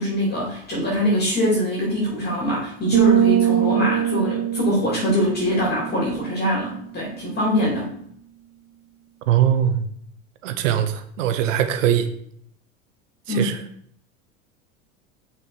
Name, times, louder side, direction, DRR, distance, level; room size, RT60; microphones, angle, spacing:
voice 1, 0.0-7.9 13.3-13.5, equal, 25° left, -5 dB, 2.9 m, -23 dB
sound 1, 2.9-6.6, right 11 dB, 35° right, 0.8 m, -22 dB
voice 2, 9.3-9.8 10.4-12.1 13.3-13.6, right 10 dB, 65° right, 9 dB, 0.9 m, -21 dB
5.9 x 4.4 x 4.3 m, 0.67 s
hypercardioid pair, 80°, 40 cm